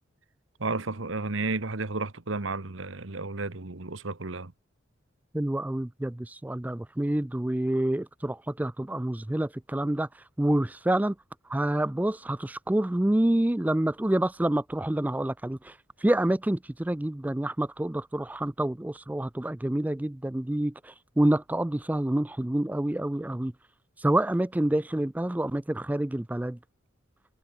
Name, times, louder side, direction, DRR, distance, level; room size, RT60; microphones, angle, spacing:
voice 1, 0.6-4.5, right 3 dB, 70° right, 1.5 m, -32 dB
voice 2, 5.3-10.1 10.4-11.1 11.5-23.5 24.0-26.6, right 1 dB, 10° right, 0.3 m, -27 dB
head